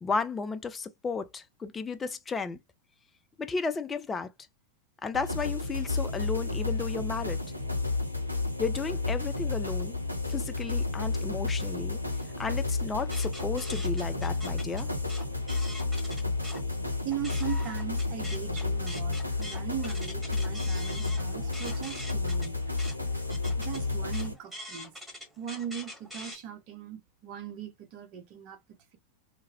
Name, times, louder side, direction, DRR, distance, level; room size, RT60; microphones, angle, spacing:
voice 1, 0.0-2.6 3.4-4.3 5.0-7.4 8.6-10.0 10.3-12.0 12.4-14.9, left 4 dB, 15° left, 0.4 m, -33 dB
sound 1, 5.1-24.3, left 3 dB, 90° right, 0.5 m, -31 dB
sound 2, 13.0-16.6 17.0-26.4, left 1 dB, 5° right, 1.4 m, -44 dB
voice 2, 17.0-22.6 23.6-24.9 25.4-29.0, right 9 dB, 40° right, 0.7 m, -39 dB
2.2 x 2.1 x 3.4 m
figure-of-eight pair, 90°, 0 cm